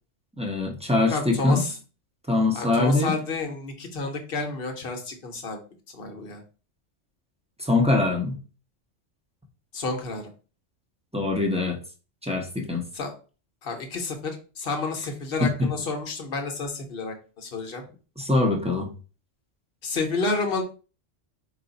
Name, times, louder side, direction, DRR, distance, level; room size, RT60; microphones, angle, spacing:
voice 1, 0.4-1.6 2.3-3.1 7.6-8.4 11.1-11.8 12.2-12.8 15.4-15.7 18.2-18.9, left 2 dB, 5° right, 1 dB, 0.7 m, -23 dB
voice 2, 1.1-1.8 2.5-5.6 5.9-6.4 9.7-10.3 12.9-13.1 13.6-14.3 14.6-17.8 19.8-20.6, left 3 dB, 55° left, 4 dB, 0.9 m, -30 dB
4.9 x 2.4 x 3.9 m, 0.36 s
omnidirectional pair, 1.3 m